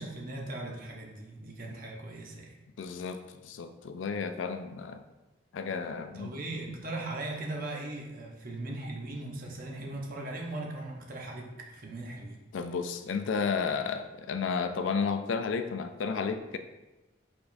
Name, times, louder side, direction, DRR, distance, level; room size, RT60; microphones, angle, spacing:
voice 1, 0.0-2.6 6.1-12.4, right 2 dB, 45° right, 0 dB, 0.7 m, -39 dB
voice 2, 2.8-5.0 5.5-6.4 6.7-6.8 12.5-16.6, left 5 dB, 80° left, 9 dB, 0.4 m, -32 dB
5.0 x 3.5 x 2.6 m, 1.1 s
head